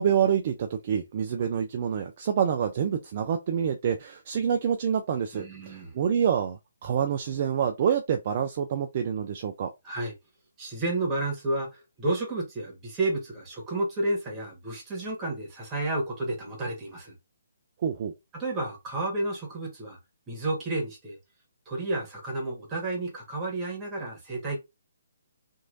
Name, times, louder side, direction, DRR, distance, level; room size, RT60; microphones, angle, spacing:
voice 1, 0.0-9.7 17.8-18.1, right 8 dB, 40° right, 0.4 m, -27 dB
voice 2, 5.3-6.0 9.8-10.1 10.6-17.1 18.3-20.0 20.3-21.2 21.6-24.6, right 2 dB, 15° right, 1.4 m, -31 dB
3.0 x 2.7 x 2.6 m
figure-of-eight pair, 140°, 0 cm